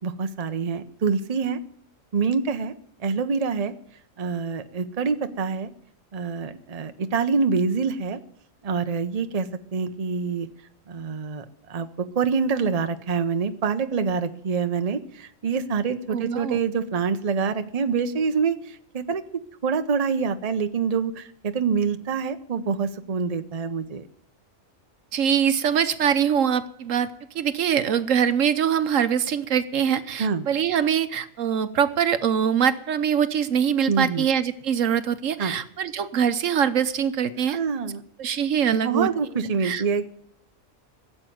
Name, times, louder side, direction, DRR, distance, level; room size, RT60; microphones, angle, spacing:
voice 1, 0.0-1.6 2.1-2.7 3.0-3.7 4.2-5.7 6.1-8.2 8.6-10.5 10.9-19.2 19.6-24.1 30.2-30.5 33.9-34.3 35.4-35.6 37.5-38.0 38.8-40.1, right 5 dB, 35° right, 9 dB, 0.8 m, -26 dB
voice 2, 16.1-16.6 25.1-27.1 27.3-37.6 38.2-39.1 39.6-39.8, right 8 dB, 75° right, 12 dB, 1.2 m, -23 dB
16.5 x 7.8 x 9.3 m, 0.67 s
omnidirectional pair, 1.4 m